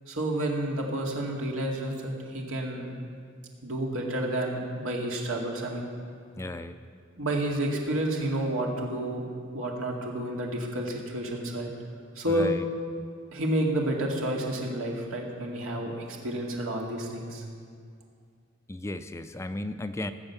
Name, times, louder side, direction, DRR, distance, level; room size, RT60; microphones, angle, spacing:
voice 1, 0.1-3.0 3.6-5.9 7.2-9.2 9.5-11.7 12.2-12.5 13.3-17.4, right 1 dB, 85° right, -1 dB, 2.2 m, -30 dB
voice 2, 6.4-6.8 12.3-12.6 18.7-20.1, left 1 dB, 15° left, 10 dB, 0.4 m, -35 dB
18.0 x 8.0 x 6.9 m, 2.2 s
head